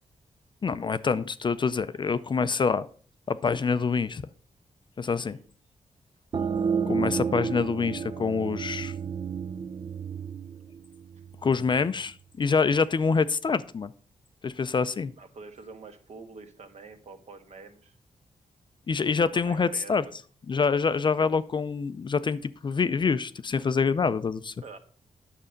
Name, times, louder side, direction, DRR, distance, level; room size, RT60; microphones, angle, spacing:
voice 1, 0.6-2.9 3.3-4.2 5.0-5.4 6.9-8.9 11.4-13.9 14.4-15.1 18.9-20.0 20.5-24.5, left 5 dB, 35° left, 0.4 m, -26 dB
sound 1, 6.3-11.7, right 6 dB, 40° right, 0.4 m, -31 dB
voice 2, 15.2-17.9 19.5-20.0 24.6-24.8, right 4 dB, 60° right, 1.4 m, -46 dB
9.9 x 6.7 x 5.1 m
wide cardioid pair, 155°, 13 cm